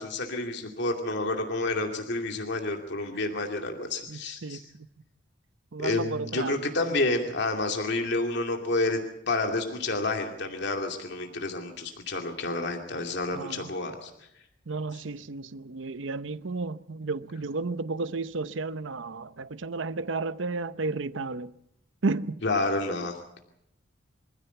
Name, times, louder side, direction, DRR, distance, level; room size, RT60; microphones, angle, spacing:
voice 1, 0.0-4.6 5.8-9.0 9.3-14.1 22.4-23.2, left 2 dB, 65° left, 2.5 m, -29 dB
voice 2, 4.1-4.6 5.7-6.7 13.3-13.7 14.7-21.5 22.0-22.4, right 3 dB, 75° right, 0.8 m, -32 dB
25.0 x 15.5 x 8.1 m
head